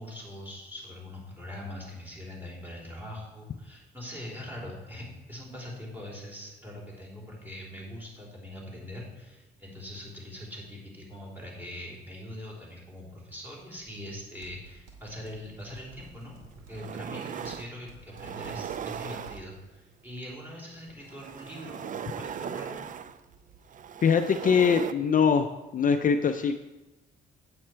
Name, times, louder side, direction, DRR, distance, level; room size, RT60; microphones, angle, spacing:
voice 1, 0.0-16.4 16.7-22.8, left 1 dB, 10° right, -3 dB, 3.5 m, -42 dB
sound 1, 13.3-14.2 14.4-19.6, right 3 dB, 85° right, 2.2 m, -53 dB
sound 2, 16.1-16.2 16.6-17.7 18.1-19.8 20.9-24.9, right 8 dB, 40° right, 0.4 m, -38 dB
voice 2, 24.0-25.5 25.7-26.5, left 6 dB, 45° left, 7 dB, 0.5 m, -22 dB
8.4 x 7.7 x 4.5 m, 1.1 s
cardioid pair, 90°, 20 cm